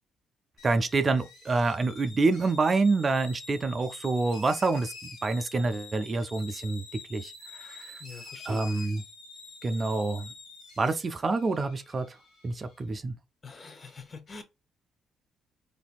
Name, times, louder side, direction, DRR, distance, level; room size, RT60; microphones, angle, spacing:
sound 1, 0.6-12.8, left 4 dB, 85° left, 1.2 m, -47 dB
voice 1, 0.6-7.9 8.5-9.0 9.6-10.3 10.8-12.2 12.4-13.1, right 3 dB, 35° right, 0.4 m, -27 dB
voice 2, 8.0-8.7 13.4-14.4, left 4 dB, 35° left, 0.8 m, -44 dB
3.9 x 2.6 x 2.4 m
cardioid pair, 90°, 0 cm